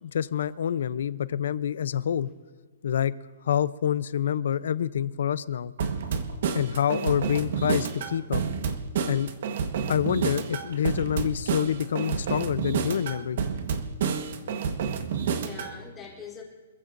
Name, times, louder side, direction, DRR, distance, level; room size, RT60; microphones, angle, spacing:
voice 1, 0.0-2.3 2.8-3.1 3.5-5.7 6.5-8.4 9.1-9.3 9.9-13.4, left 9 dB, 70° left, 17 dB, 0.6 m, -27 dB
sound 1, 5.8-15.7, right 6 dB, 55° right, 1.3 m, -29 dB
sound 2, 5.8-7.5 10.7-12.5 14.0-14.1, right 4 dB, 75° right, 2.6 m, -48 dB
voice 2, 14.4-16.4, left 6 dB, 10° left, -2 dB, 3.6 m, -45 dB
26.0 x 15.0 x 2.6 m, 1.5 s
hypercardioid pair, 165°, 0 cm